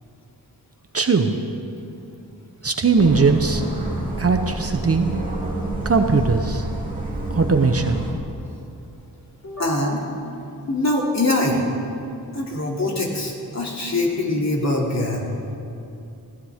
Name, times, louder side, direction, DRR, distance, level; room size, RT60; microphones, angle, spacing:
voice 1, 0.9-1.4 2.6-3.6 4.2-5.1 5.8-6.7 7.3-8.0, right 4 dB, 40° right, 6 dB, 0.9 m, -19 dB
sound 1, 3.0-8.1, right 2 dB, 20° right, 3.0 m, -28 dB
voice 2, 9.4-10.0 10.7-11.6 12.3-15.2, left 2 dB, 45° left, -2 dB, 2.8 m, -23 dB
21.5 x 16.0 x 3.6 m, 2.7 s
wide cardioid pair, 105°, 38 cm